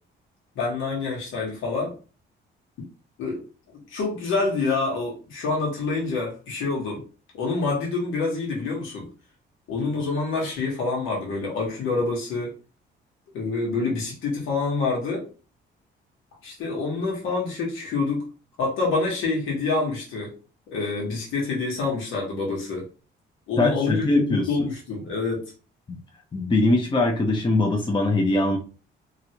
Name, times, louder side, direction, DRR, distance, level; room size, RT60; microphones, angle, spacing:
voice 1, 0.5-1.9 3.2-3.4 3.7-7.0 7.3-9.1 9.7-12.5 13.3-15.3 16.4-18.3 18.6-20.3 20.7-22.8 23.5-25.4, left 3 dB, 85° left, -2 dB, 1.3 m, -27 dB
voice 2, 23.6-24.5 25.9-26.0 26.3-28.6, left 2 dB, 25° left, 1 dB, 0.6 m, -22 dB
3.0 x 2.5 x 2.8 m, 0.34 s
cardioid pair, 90°, 20 cm